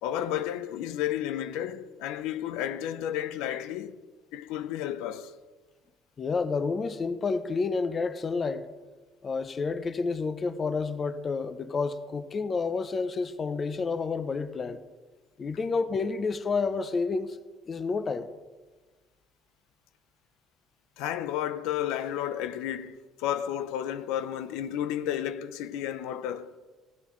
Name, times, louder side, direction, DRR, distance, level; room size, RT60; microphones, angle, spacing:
voice 1, 0.0-4.0 4.3-5.3 21.0-26.6, left 11 dB, 85° left, 0.6 m, -32 dB
voice 2, 6.2-8.7 9.2-14.8 15.4-17.4 17.7-18.3, left 4 dB, 25° left, 0.6 m, -29 dB
16.0 x 12.5 x 3.2 m
cardioid pair, 155°, 0 cm